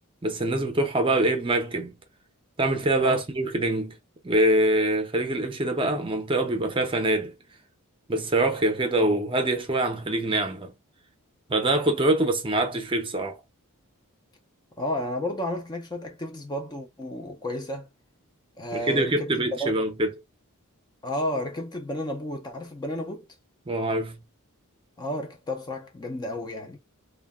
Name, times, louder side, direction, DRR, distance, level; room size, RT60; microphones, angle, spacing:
voice 1, 0.2-2.0 2.6-4.0 4.2-7.3 8.1-10.7 11.5-13.4 18.7-20.1 23.7-24.2, right 1 dB, 25° right, 0.6 m, -24 dB
voice 2, 14.8-17.9 18.6-19.8 21.0-23.3 25.0-26.8, left 1 dB, 20° left, 0.4 m, -32 dB
2.2 x 2.1 x 3.4 m
head